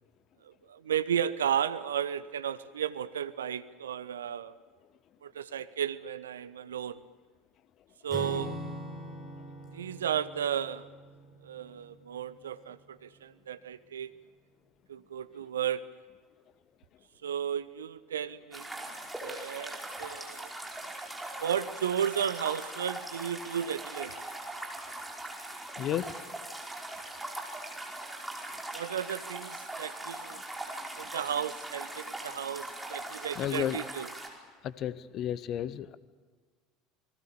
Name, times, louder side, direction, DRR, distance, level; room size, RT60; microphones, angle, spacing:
voice 1, 0.4-4.6 5.2-7.0 8.0-8.6 9.7-10.9 11.4-14.1 14.9-15.8 17.2-18.9 19.2-20.5 21.4-24.3 28.7-30.4 31.0-34.1, right 9 dB, 70° right, 15 dB, 0.8 m, -34 dB
Acoustic guitar / Strum, 8.1-12.9, equal, 15° left, 5.0 m, -43 dB
sound 1, 18.5-34.3, right 1 dB, 5° right, 5.0 m, -41 dB
voice 2, 25.8-26.2 33.4-33.8 34.6-36.0, left 11 dB, 45° left, 18 dB, 0.9 m, -32 dB
28.5 x 21.0 x 7.0 m, 1.5 s
figure-of-eight pair, 70°, 0 cm